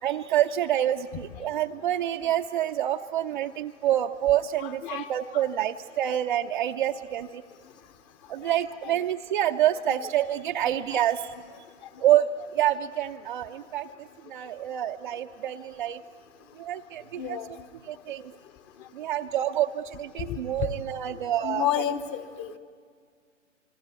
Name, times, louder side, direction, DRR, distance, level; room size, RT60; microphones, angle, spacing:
voice 1, 0.0-7.4 8.3-11.3 12.0-16.0 16.6-17.4 17.9-18.3 18.9-21.8, right 12 dB, 40° right, 3 dB, 0.7 m, -27 dB
voice 2, 4.6-5.5 8.4-8.5 8.8-9.0 10.0-10.1 10.9-11.0 17.2-17.5 20.3-20.7 21.4-22.6, left 10 dB, 20° left, 11 dB, 1.1 m, -31 dB
28.5 x 21.0 x 9.5 m, 2.1 s
hypercardioid pair, 135°, 37 cm